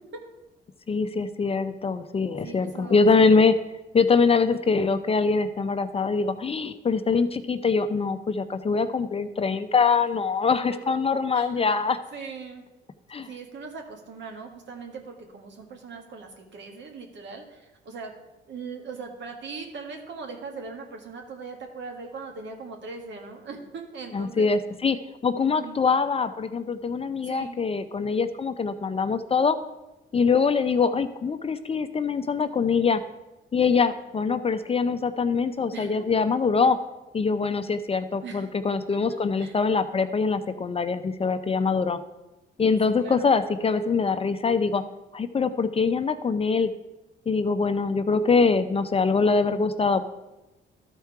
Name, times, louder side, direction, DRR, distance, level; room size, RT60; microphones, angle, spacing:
voice 1, 0.9-3.6 3.9-12.0 13.1-13.3 24.1-29.6 30.1-33.0 33.5-36.8 37.1-42.0 42.6-44.8 45.1-46.7 47.3-50.1, left 4 dB, 30° left, 10 dB, 0.5 m, -23 dB
voice 2, 2.4-3.3 11.3-11.6 12.1-12.6 13.2-18.1 18.5-24.5 25.4-25.8 27.2-27.6 35.7-36.1 38.2-38.5 39.1-39.6 42.9-43.4, right 4 dB, 65° right, 3 dB, 1.6 m, -40 dB
13.0 x 4.5 x 4.7 m, 1.0 s
cardioid pair, 90°, 20 cm